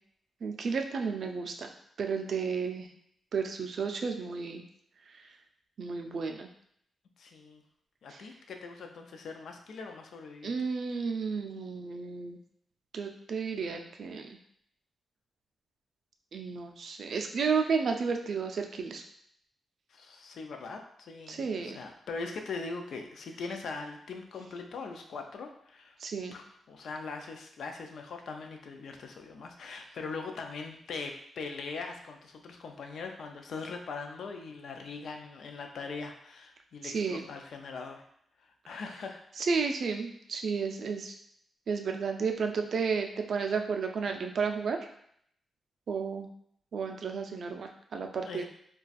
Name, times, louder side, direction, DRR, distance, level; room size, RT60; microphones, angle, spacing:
voice 1, 0.4-1.7 2.0-2.9 3.3-4.6 5.1-5.3 5.8-6.5 8.1-8.2 10.4-12.4 12.9-14.4 16.3-19.0 21.3-21.8 26.0-26.4 36.8-37.2 39.4-41.1 41.7-44.8 45.9-46.3 46.7-48.4, right 5 dB, 55° right, 4 dB, 0.4 m, -32 dB
voice 2, 7.2-7.6 8.0-10.5 19.9-26.0 26.3-38.1 38.4-39.2 48.2-48.4, left 4 dB, 70° left, 4 dB, 0.4 m, -41 dB
2.4 x 2.2 x 4.0 m, 0.69 s
wide cardioid pair, 145°, 0 cm